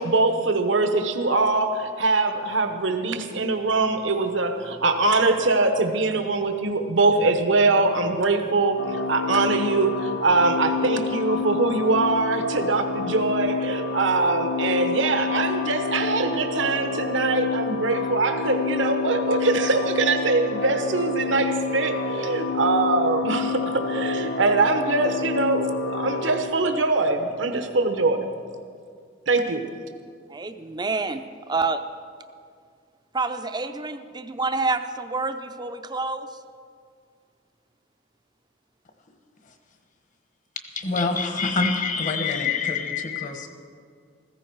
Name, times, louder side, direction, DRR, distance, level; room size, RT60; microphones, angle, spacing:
voice 1, 0.0-28.3 29.3-29.6, right 3 dB, 70° right, 6 dB, 1.0 m, -23 dB
sound 1, 8.8-26.4, left 4 dB, 60° left, 1.0 m, -28 dB
voice 2, 30.3-31.2 31.5-31.8 33.1-36.3, right 3 dB, 20° right, 8 dB, 0.6 m, -27 dB
voice 3, 40.8-43.5, left 4 dB, 40° left, 6 dB, 1.3 m, -25 dB
15.0 x 15.0 x 4.7 m, 2.1 s
head